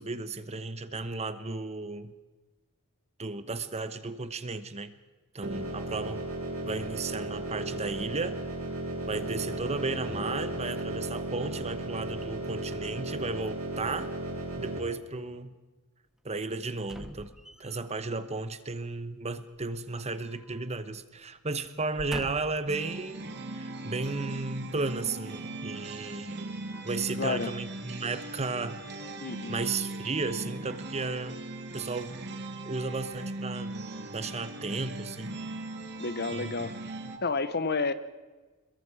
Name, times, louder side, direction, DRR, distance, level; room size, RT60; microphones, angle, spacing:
voice 1, 0.0-2.1 3.2-4.9 5.3-6.2 6.6-8.4 9.1-14.1 14.6-15.6 16.2-17.3 17.6-23.3 23.6-26.6 26.8-28.8 29.5-31.4 31.7-32.3 32.6-35.4 36.3-36.5, right 3 dB, 30° right, 12 dB, 1.0 m, -34 dB
sound 1, 5.4-14.8, right 2 dB, 80° right, 7.7 m, -35 dB
sound 2, 16.9-18.0 19.5-20.7 21.0-21.2 21.8-22.7 23.4-23.5, equal, ahead, 1.2 m, -44 dB
sound 3, 22.7-37.2, right 2 dB, 50° right, 2.3 m, -39 dB
voice 2, 27.2-27.5 29.2-29.6 36.0-36.8 37.2-37.9, left 4 dB, 50° left, 13 dB, 1.1 m, -30 dB
27.5 x 22.0 x 4.9 m, 1.2 s
head